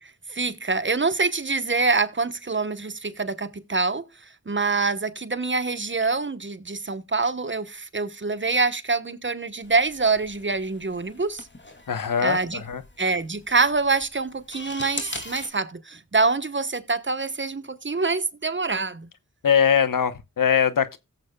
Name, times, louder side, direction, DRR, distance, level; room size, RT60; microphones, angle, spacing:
voice 1, 0.0-11.5 12.2-12.6 13.0-19.1, right 3 dB, 35° right, 1.0 m, -25 dB
sound 1, 9.6-15.5, left 2 dB, 35° left, 2.4 m, -40 dB
voice 2, 11.9-12.8 19.4-21.0, left 7 dB, 70° left, 1.0 m, -22 dB
17.0 x 7.5 x 2.3 m
cardioid pair, 40°, 34 cm